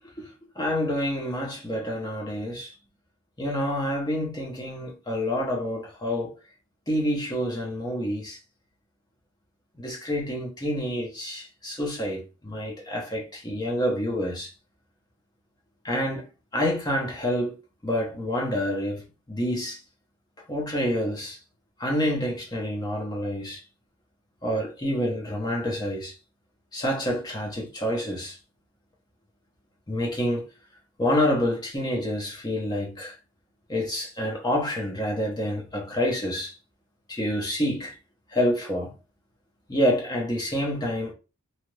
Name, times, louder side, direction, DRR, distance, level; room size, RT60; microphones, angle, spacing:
voice 1, 0.6-2.8 3.4-6.3 6.9-8.4 9.8-14.5 15.8-16.3 16.5-17.6 17.8-19.8 20.5-21.4 21.8-23.6 24.4-26.2 26.7-28.4 29.9-30.5 31.0-33.2 33.7-36.6 37.1-38.0 38.3-38.9 39.7-41.1, equal, 20° left, 0.7 m, -28 dB
2.7 x 2.4 x 3.2 m
head